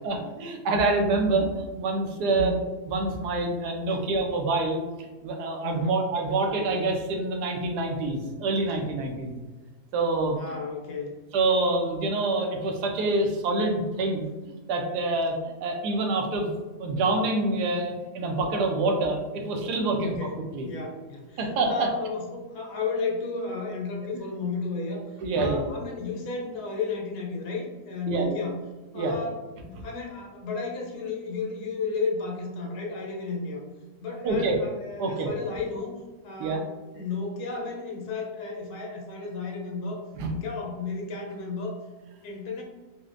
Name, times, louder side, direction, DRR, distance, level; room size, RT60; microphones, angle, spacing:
voice 1, 0.0-2.5 2.9-9.3 9.9-10.4 11.3-16.5 16.8-20.2 20.5-20.7 21.4-21.9 24.1-24.2 25.2-25.6 28.1-28.4 28.9-29.1 34.2-34.6 35.0-35.3 36.4-36.6 40.2-40.3, right 2 dB, 85° right, 2 dB, 1.2 m, -26 dB
voice 2, 2.2-2.6 3.9-4.1 5.6-6.1 10.4-11.2 20.0-20.4 20.6-28.6 28.9-33.6 34.0-35.9 36.2-36.7 36.9-40.1 40.3-41.8 42.2-42.6, left 3 dB, 85° left, 0 dB, 1.2 m, -33 dB
4.0 x 2.1 x 2.4 m, 1.2 s
omnidirectional pair, 1.7 m